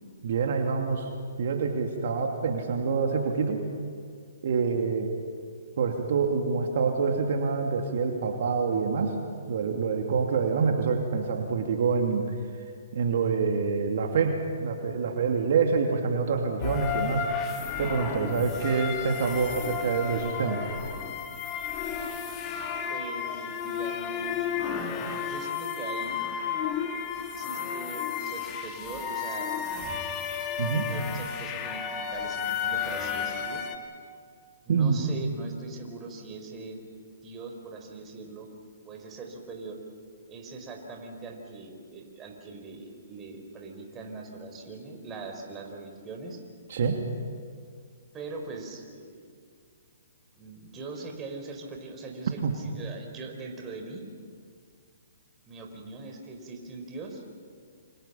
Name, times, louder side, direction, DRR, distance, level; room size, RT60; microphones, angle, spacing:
voice 1, 0.2-1.1 1.4-3.6 4.4-5.1 5.8-9.1 9.5-12.2 12.9-17.2 17.8-20.6 30.6-30.9 34.7-35.0 46.7-47.0 52.4-52.5, right 5 dB, 60° right, 2 dB, 2.7 m, -26 dB
sound 1, 16.6-33.8, left 7 dB, 25° left, 2.7 m, -32 dB
voice 2, 22.9-24.5 25.2-26.3 27.1-29.7 30.9-33.6 34.6-36.8 37.2-38.5 38.8-39.8 40.3-46.4 48.1-49.3 50.4-54.0 55.5-57.2, right 3 dB, 20° right, 2 dB, 4.8 m, -41 dB
28.5 x 26.5 x 5.8 m, 2.2 s
hypercardioid pair, 130°, 0 cm